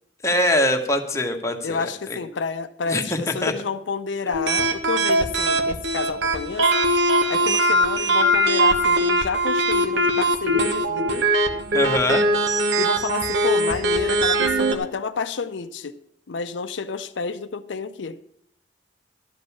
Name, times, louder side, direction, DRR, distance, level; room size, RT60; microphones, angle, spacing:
voice 1, 0.2-2.2 2.9-3.5 11.7-12.3, left 1 dB, 15° left, 3 dB, 1.2 m, -23 dB
voice 2, 1.6-6.7 7.3-11.2 12.8-16.0 16.3-18.3, left 5 dB, 80° left, 10 dB, 0.5 m, -29 dB
sound 1, 4.3-14.7, right 1 dB, 75° right, 1.2 m, -21 dB
12.0 x 5.3 x 8.5 m, 0.72 s
head